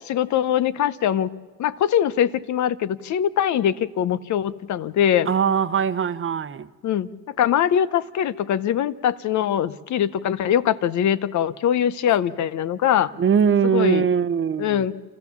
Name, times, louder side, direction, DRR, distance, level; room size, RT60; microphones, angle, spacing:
voice 1, 0.0-1.3 1.6-5.3 6.8-7.1 7.4-13.1 13.7-14.0 14.6-14.9, left 10 dB, 70° left, 0.8 m, -22 dB
voice 2, 5.2-6.7 13.2-14.9, right 7 dB, 45° right, 0.9 m, -21 dB
27.5 x 14.5 x 7.1 m
cardioid pair, 90°, 30 cm